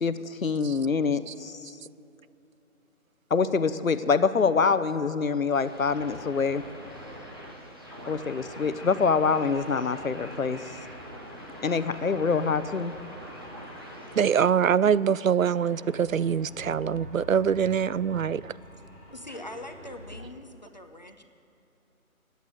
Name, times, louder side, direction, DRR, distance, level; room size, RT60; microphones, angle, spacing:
voice 1, 0.0-1.6 3.3-6.6 8.1-10.6 11.6-12.9, left 5 dB, 70° left, 12 dB, 1.0 m, -25 dB
sound 1, 5.6-14.5, equal, 15° right, 1.0 m, -43 dB
sound 2, 13.0-20.2, left 1 dB, 35° right, 2.2 m, -47 dB
voice 2, 14.2-18.5, right 7 dB, 65° right, 19 dB, 0.5 m, -24 dB
voice 3, 19.1-21.2, left 1 dB, 30° left, 5 dB, 0.8 m, -42 dB
16.5 x 8.3 x 9.3 m, 2.9 s
figure-of-eight pair, 165°, 43 cm